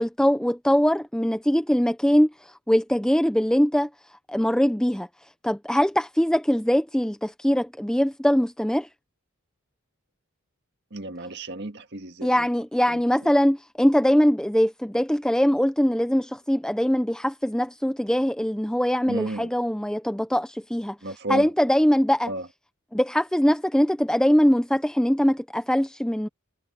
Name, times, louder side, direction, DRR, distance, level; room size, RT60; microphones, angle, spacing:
voice 1, 0.0-3.9 4.3-5.1 5.4-8.9 12.2-21.0 21.3-22.3 22.9-26.3, equal, 5° left, 0.5 m, -22 dB
voice 2, 10.9-12.5 12.9-13.0 19.1-19.5 21.0-21.5 22.3-22.5, right 2 dB, 50° right, 1.8 m, -33 dB
head